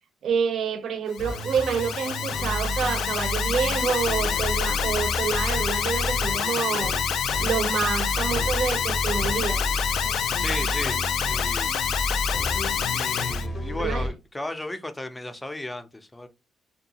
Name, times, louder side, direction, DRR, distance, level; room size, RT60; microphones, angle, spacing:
voice 1, 0.2-6.9 7.4-9.6 13.8-14.1, right 6 dB, 65° right, 0.5 m, -27 dB
Alarm, 1.1-13.5, left 8 dB, 75° left, 0.3 m, -27 dB
sound 1, 1.2-14.1, equal, 60° left, 0.7 m, -31 dB
voice 2, 10.4-11.0 11.2-11.7 12.9-16.3, left 2 dB, 15° left, 0.5 m, -34 dB
2.6 x 2.3 x 2.8 m
cardioid pair, 90°, 0 cm